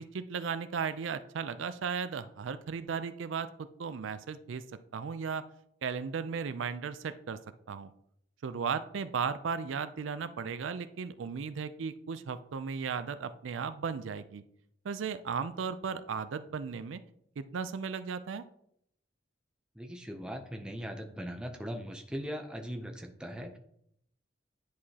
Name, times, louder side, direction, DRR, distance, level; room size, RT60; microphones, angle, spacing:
voice 1, 0.0-3.5 3.8-4.6 4.9-5.4 5.8-7.4 7.7-7.9 8.4-14.4 14.8-17.0 17.4-18.4, right 6 dB, 85° right, 12 dB, 0.4 m, -35 dB
voice 2, 19.8-23.6, equal, 5° right, 3 dB, 0.5 m, -39 dB
10.0 x 4.8 x 2.8 m, 0.71 s
head